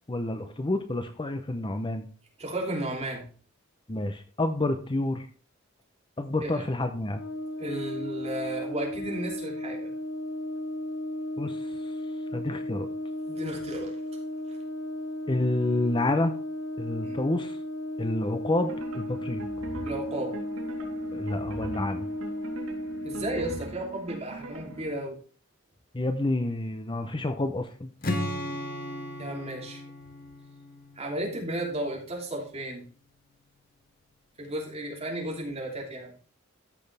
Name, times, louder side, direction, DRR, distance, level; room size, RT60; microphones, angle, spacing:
voice 1, 0.1-2.1 3.9-5.3 6.2-7.2 11.4-11.7 12.3-12.9 15.3-16.3 16.8-17.6 18.0-19.4 21.1-22.1 25.9-27.9, left 2 dB, 25° left, 8 dB, 0.6 m, -29 dB
voice 2, 2.4-3.2 6.4-6.7 7.6-9.9 13.3-14.0 17.0-17.2 19.8-20.4 23.0-25.2 29.2-29.8 31.0-32.8 34.4-36.1, right 1 dB, 30° right, -1 dB, 3.0 m, -34 dB
Brass instrument, 7.1-23.5, left 1 dB, 80° left, 1.9 m, -35 dB
sound 1, 18.6-24.9, right 2 dB, 80° right, 3.4 m, -41 dB
Strum, 28.0-32.1, left 1 dB, 45° left, 1.7 m, -36 dB
14.0 x 6.2 x 3.4 m, 0.40 s
head